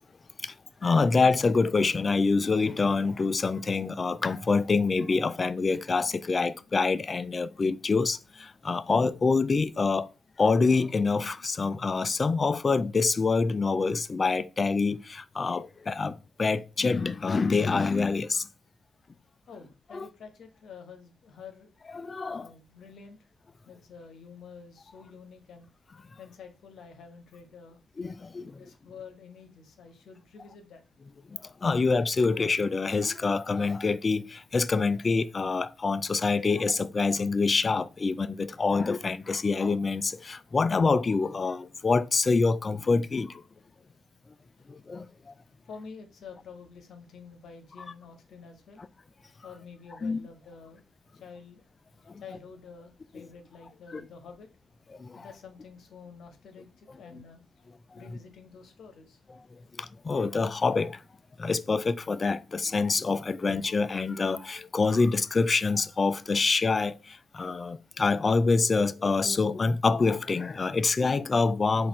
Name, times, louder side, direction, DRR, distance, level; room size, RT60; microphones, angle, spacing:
voice 1, 0.8-10.1 10.4-18.5 19.9-20.1 21.9-22.5 28.0-28.6 31.6-43.4 44.7-45.3 50.0-50.2 53.2-53.3 53.9-54.0 55.0-55.3 57.1-57.2 58.1-58.2 59.8-61.0 61.4-71.9, left 4 dB, 40° left, 0.3 m, -26 dB
voice 2, 19.5-21.7 22.3-23.3 23.6-25.7 26.2-27.8 28.5-30.8 45.6-48.8 49.4-50.8 51.1-51.7 52.2-54.5 55.1-57.7 57.9-59.2, left 5 dB, 65° left, 0.9 m, -48 dB
4.0 x 2.5 x 4.2 m
hypercardioid pair, 40°, 0 cm